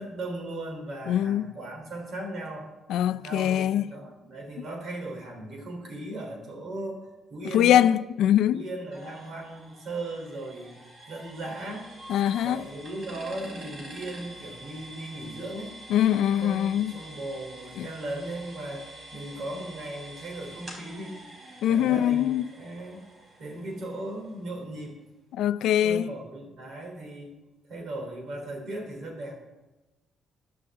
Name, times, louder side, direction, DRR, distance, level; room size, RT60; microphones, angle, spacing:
voice 1, 0.0-2.7 3.2-7.8 8.5-10.8 11.1-11.9 12.4-15.7 16.4-21.2 21.7-23.1 23.4-25.0 25.8-27.3 27.7-29.4, right 1 dB, 60° right, 3.6 m, -37 dB
voice 2, 1.1-1.5 2.9-3.8 7.5-8.6 12.1-12.6 15.9-17.0 17.8-17.9 21.6-22.4 25.3-26.1, left 11 dB, 85° left, 0.4 m, -23 dB
sound 1, 8.9-24.6, right 1 dB, 35° right, 4.5 m, -47 dB
15.5 x 11.0 x 3.7 m
cardioid pair, 120°, 0 cm